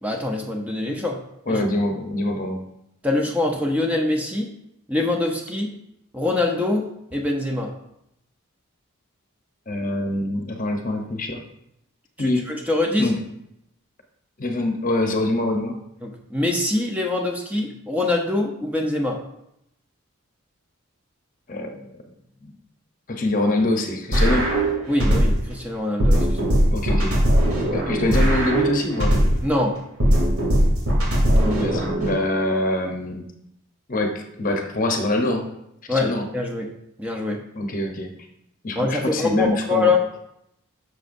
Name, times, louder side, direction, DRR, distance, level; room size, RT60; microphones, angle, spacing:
voice 1, 0.0-1.2 1.5-1.6 3.0-4.5 4.9-5.7 6.1-7.7 12.2-13.1 16.0-19.2 24.9-26.6 29.4-29.8 31.3-31.7 35.9-36.7 37.0-37.4 38.7-40.0, left 2 dB, 5° right, 0 dB, 0.7 m, -24 dB
voice 2, 1.5-2.6 9.7-11.4 12.2-12.5 13.0-13.2 14.4-15.8 21.5-21.9 22.4-22.5 23.1-24.5 26.7-27.2 27.7-29.2 31.5-33.3 33.9-35.5 35.9-36.3 37.5-38.1 38.6-39.9, left 1 dB, 40° left, 3 dB, 0.9 m, -24 dB
sound 1, 24.1-25.5 26.0-29.5 30.0-32.1, right 1 dB, 85° right, 2.8 m, -19 dB
11.5 x 6.5 x 2.6 m, 0.80 s
head